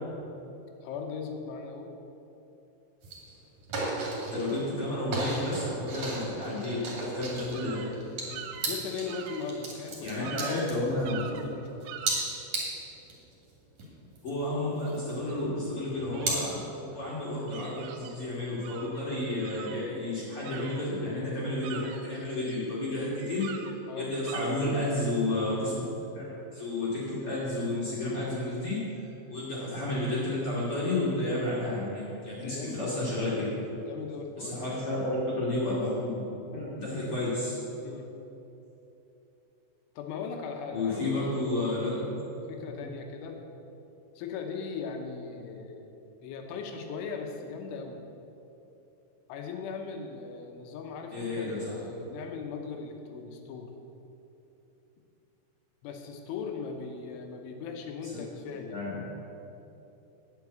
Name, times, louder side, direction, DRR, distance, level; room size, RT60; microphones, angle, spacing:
voice 1, 0.8-1.9 8.3-11.9 23.9-24.2 32.4-33.0 33.8-34.7 37.8-38.1 40.0-42.1 42.5-43.4 44.2-45.9 46.2-48.0 49.3-53.7 55.8-58.8, left 5 dB, 75° left, 3 dB, 3.2 m, -39 dB
sound 1, 3.0-3.3 3.6-4.7 5.1-11.4 11.8-13.1 13.5-13.6 13.8-15.4 15.9-16.4, right 2 dB, 40° right, 2.8 m, -34 dB
voice 2, 4.3-7.8 10.0-11.2 14.2-23.5 24.0-25.7 26.1-28.8 29.3-33.5 34.4-37.6 40.7-42.2 42.7-42.8 51.1-51.8 58.0-58.2 58.7-59.0, left 1 dB, 40° left, -8 dB, 2.1 m, -31 dB
sound 2, 7.5-8.0 8.3-9.5 9.9-10.0 10.2-10.7 11.0-11.5 11.9-12.3 14.9-15.0 15.3-15.4 16.1-16.4 17.1-18.3 18.6-19.0 19.4-21.1 21.4-22.7 23.1-23.8 24.2-24.4, right 8 dB, 85° right, 3.1 m, -44 dB
9.8 x 7.3 x 8.3 m, 2.9 s
omnidirectional pair, 5.9 m